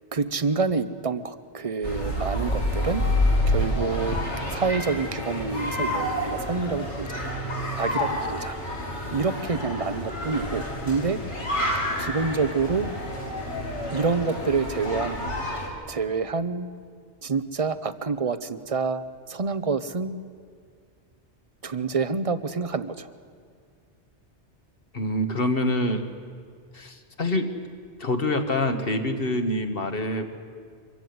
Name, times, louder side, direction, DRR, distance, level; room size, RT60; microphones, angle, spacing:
voice 1, 0.1-3.0 3.5-4.2 4.5-7.2 7.7-8.6 9.1-11.2 12.0-12.9 13.9-15.3 15.9-16.7 17.2-20.1 21.6-23.1, right 4 dB, 35° right, 13 dB, 0.8 m, -27 dB
sound 1, 1.8-15.7, left 1 dB, 80° left, 3.6 m, -28 dB
voice 2, 24.9-26.0 26.7-27.5 28.0-30.3, left 1 dB, 55° left, 6 dB, 1.7 m, -26 dB
24.5 x 15.5 x 9.4 m, 2.1 s
omnidirectional pair, 1.2 m